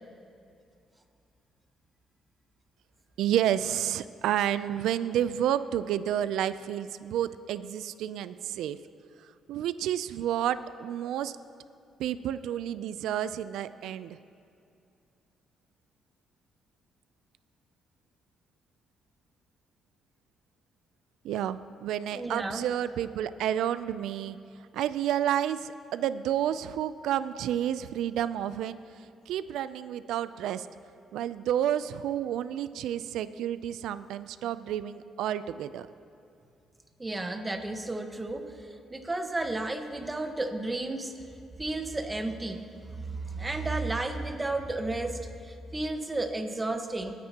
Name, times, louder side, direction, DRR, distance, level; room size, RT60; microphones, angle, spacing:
voice 1, 3.2-8.8 9.5-11.3 12.0-14.2 21.2-24.4 24.7-28.8 29.3-30.7 31.1-35.9, right 10 dB, 85° right, 14 dB, 0.4 m, -30 dB
voice 2, 22.1-22.7 37.0-41.1 41.6-47.1, right 2 dB, 20° right, 5 dB, 1.2 m, -33 dB
27.5 x 9.4 x 2.9 m, 2.6 s
cardioid pair, 90°, 0 cm